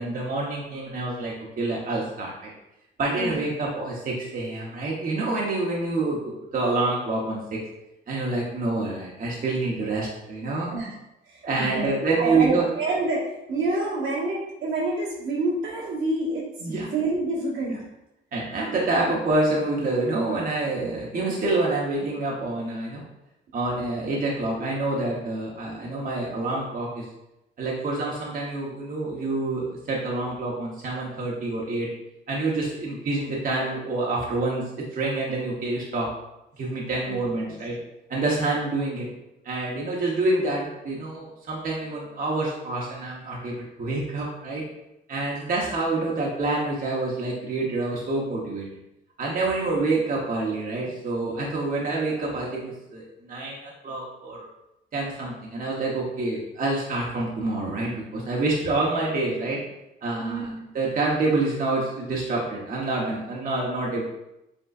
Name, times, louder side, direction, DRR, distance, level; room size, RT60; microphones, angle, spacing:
voice 1, 0.0-2.5 3.0-7.4 8.1-10.7 11.4-12.7 16.6-16.9 18.3-23.1 23.5-27.1 27.6-31.9 32.3-34.6 34.9-36.1 36.6-37.8 38.1-39.1 39.4-44.6 45.1-48.7 49.2-54.5 54.9-59.6 60.0-64.0, right 2 dB, 45° right, -3 dB, 1.0 m, -27 dB
voice 2, 11.3-11.8 12.2-17.8 37.1-37.6 60.2-60.6, right 2 dB, 80° right, -6 dB, 1.6 m, -28 dB
5.2 x 3.5 x 2.5 m, 0.89 s
cardioid pair, 90°, 20 cm